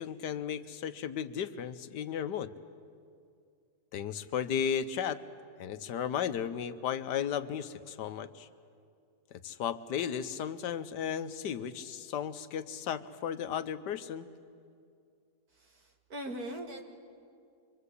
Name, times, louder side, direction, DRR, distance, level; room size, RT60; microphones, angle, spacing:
voice 1, 0.0-2.5 3.9-5.2 5.6-8.5 9.4-14.3, left 8 dB, 85° left, 11 dB, 1.5 m, -35 dB
voice 2, 15.5-16.8, right 1 dB, 60° right, 3 dB, 2.6 m, -41 dB
26.0 x 23.5 x 8.3 m, 2.3 s
omnidirectional pair, 1.8 m